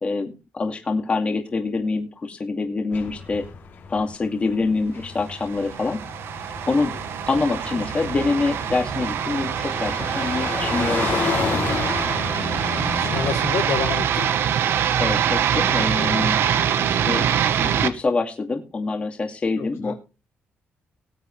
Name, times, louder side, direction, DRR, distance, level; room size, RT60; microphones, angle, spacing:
voice 1, 0.0-3.4 3.9-6.0 6.7-6.9 7.3-11.2 15.0-16.4 17.1-19.9, left 3 dB, 30° left, 4 dB, 2.3 m, -25 dB
sound 1, 2.9-13.3, left 5 dB, 55° left, 3.0 m, -31 dB
sound 2, 5.4-17.9, right 9 dB, 75° right, 1.1 m, -24 dB
voice 2, 13.0-14.4 19.6-19.9, left 7 dB, 85° left, 4 dB, 3.2 m, -28 dB
19.5 x 8.1 x 3.2 m, 0.30 s
cardioid pair, 135°, 4 cm